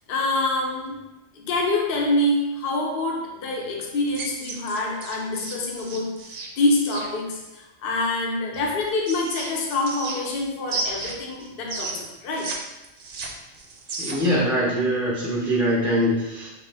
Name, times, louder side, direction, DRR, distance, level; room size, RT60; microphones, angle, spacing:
voice 1, 0.1-1.0 1.3-12.6, left 2 dB, 55° left, 0 dB, 0.7 m, -26 dB
sound 1, 4.1-7.1 8.5-10.4 10.7-12.6 12.8-14.4, right 3 dB, 80° right, 0.3 m, -33 dB
voice 2, 14.0-16.5, equal, ahead, -7 dB, 0.4 m, -23 dB
3.3 x 2.8 x 3.3 m, 0.98 s
omnidirectional pair, 1.3 m